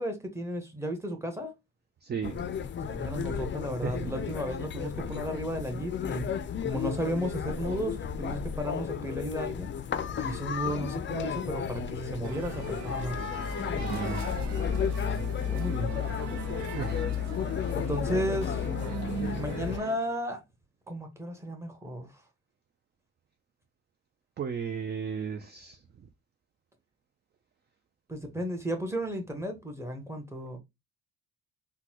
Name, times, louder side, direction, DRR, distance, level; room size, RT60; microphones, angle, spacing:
voice 1, 0.0-1.5 2.8-6.3 6.6-9.7 10.2-13.2 15.3-16.1 17.7-18.7 19.3-20.4 20.9-22.2 28.1-30.6, equal, 10° right, 1.1 m, -34 dB
voice 2, 2.0-2.4 3.8-4.1 13.8-14.3 16.7-17.1 17.5-17.7 24.4-25.8, right 7 dB, 35° right, 0.5 m, -35 dB
sound 1, 2.2-19.8, left 8 dB, 40° left, 0.5 m, -33 dB
sound 2, 12.2-20.0, right 7 dB, 65° right, 0.7 m, -40 dB
3.8 x 2.2 x 2.9 m
cardioid pair, 90°, 30 cm